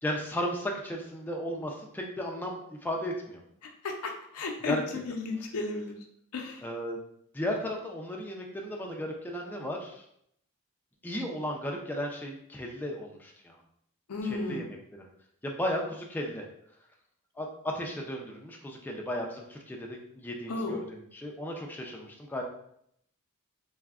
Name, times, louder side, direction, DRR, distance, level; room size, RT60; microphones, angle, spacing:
voice 1, 0.0-3.4 4.6-4.8 6.6-7.0 7.3-10.0 11.0-13.5 14.3-15.0 15.4-16.5 17.4-22.4, equal, 10° left, 0 dB, 0.3 m, -35 dB
voice 2, 3.6-6.0 6.3-6.6 14.1-14.7 20.5-20.8, left 3 dB, 85° left, 2 dB, 0.5 m, -34 dB
3.4 x 2.0 x 2.3 m, 0.71 s
head